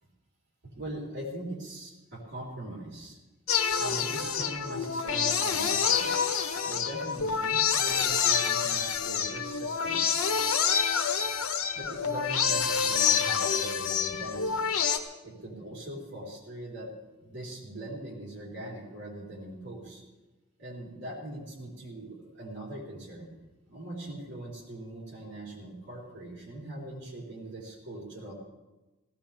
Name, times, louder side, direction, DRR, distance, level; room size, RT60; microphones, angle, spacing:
voice 1, 0.6-3.2 3.8-6.2 6.6-10.0 11.7-14.6 15.2-16.9 17.2-20.0 20.6-23.3 23.7-28.3, right 1 dB, 60° right, -3 dB, 4.3 m, -41 dB
sound 1, 3.5-15.0, left 7 dB, 85° left, 1.3 m, -27 dB
17.5 x 16.0 x 3.6 m, 1.1 s
head